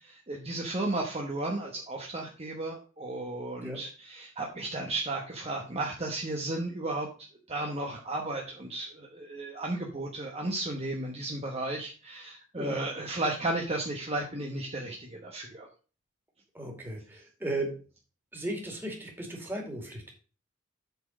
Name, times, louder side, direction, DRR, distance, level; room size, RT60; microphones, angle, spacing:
voice 1, 0.0-7.1 7.5-15.7, right 2 dB, 30° right, 0 dB, 1.1 m, -34 dB
voice 2, 16.5-17.7 18.3-20.1, right 1 dB, 10° right, 0 dB, 2.4 m, -36 dB
8.1 x 4.4 x 6.2 m, 0.37 s
head